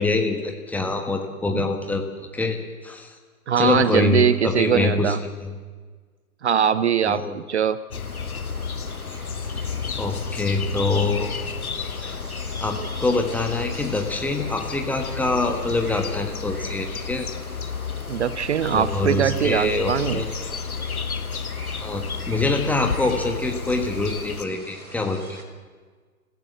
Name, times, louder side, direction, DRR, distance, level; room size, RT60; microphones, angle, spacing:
voice 1, 0.0-3.1 3.6-5.5 7.1-7.3 10.0-11.3 12.0-12.2 12.6-17.3 18.7-20.3 21.8-25.4, left 3 dB, 5° left, 3 dB, 1.4 m, -25 dB
voice 2, 3.5-5.2 6.4-7.8 12.8-12.9 18.1-20.2, right 8 dB, 50° right, 16 dB, 0.6 m, -22 dB
sound 1, 7.9-24.4, left 5 dB, 75° left, 1.2 m, -32 dB
sound 2, 8.0-25.4, right 2 dB, 80° right, 3.6 m, -43 dB
25.5 x 15.5 x 7.3 m, 1.5 s
figure-of-eight pair, 120°, 44 cm